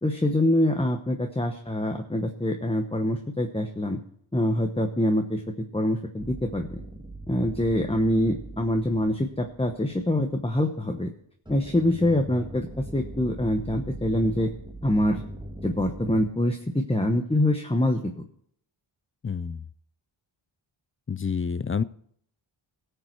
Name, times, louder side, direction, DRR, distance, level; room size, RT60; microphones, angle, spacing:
voice 1, 0.0-4.0 4.3-5.4 5.7-6.8 7.3-11.1 11.5-12.7 12.9-14.5 14.8-15.2 15.6-18.0, left 1 dB, 10° left, 4 dB, 1.0 m, -25 dB
sound 1, 6.2-10.5 11.4-16.3, right 1 dB, 10° right, 1.8 m, -41 dB
voice 2, 19.2-19.6 21.1-21.8, left 6 dB, 30° left, 17 dB, 0.4 m, -28 dB
18.0 x 7.0 x 4.6 m, 0.66 s
wide cardioid pair, 80°, 50 cm